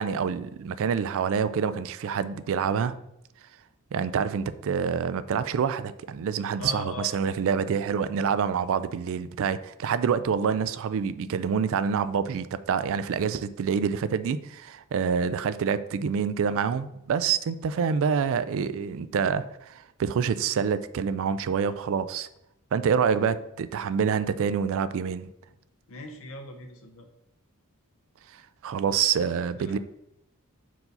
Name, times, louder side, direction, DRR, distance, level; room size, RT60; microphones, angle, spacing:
voice 1, 0.0-2.9 3.9-22.3 22.7-25.3 28.3-29.8, right 6 dB, 60° right, 14 dB, 0.3 m, -27 dB
voice 2, 6.6-7.3 25.9-27.1 29.1-29.8, left 3 dB, 65° left, 4 dB, 0.9 m, -40 dB
5.4 x 4.7 x 3.9 m, 0.83 s
head